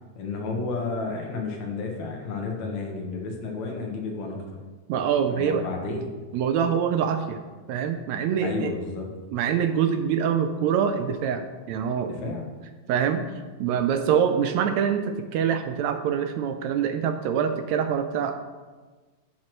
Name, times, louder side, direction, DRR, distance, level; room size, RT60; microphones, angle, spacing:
voice 1, 0.2-4.4 5.3-6.1 8.4-9.1 12.0-12.5, left 3 dB, 70° left, 1 dB, 2.5 m, -31 dB
voice 2, 4.9-5.7 6.3-7.4 7.7-8.7 9.3-11.4 11.7-12.4 12.9-13.2 13.6-18.3, right 8 dB, 80° right, 7 dB, 1.7 m, -25 dB
11.5 x 7.5 x 3.1 m, 1.3 s
omnidirectional pair, 3.5 m